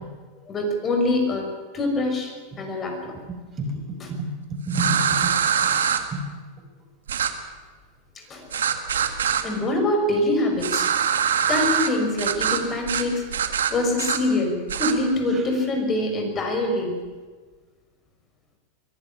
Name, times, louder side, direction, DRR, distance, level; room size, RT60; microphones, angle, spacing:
voice 1, 0.5-1.5 1.7-3.1 8.3-8.5 9.0-9.1 9.4-10.9 11.5-16.9, left 1 dB, 30° left, 3 dB, 5.7 m, -24 dB
voice 2, 3.3-5.3 5.6-5.7 6.1-6.2 15.3-15.4, right 1 dB, 30° right, 3 dB, 5.5 m, -30 dB
sound 1, 4.7-6.0 7.1-7.3 8.5-9.4 10.6-11.9 12.2-12.6 12.9-13.1 13.3-14.2 14.7-14.9, right 8 dB, 85° right, 1.7 m, -23 dB
22.5 x 11.5 x 10.0 m, 1.4 s
hypercardioid pair, 105°, 0 cm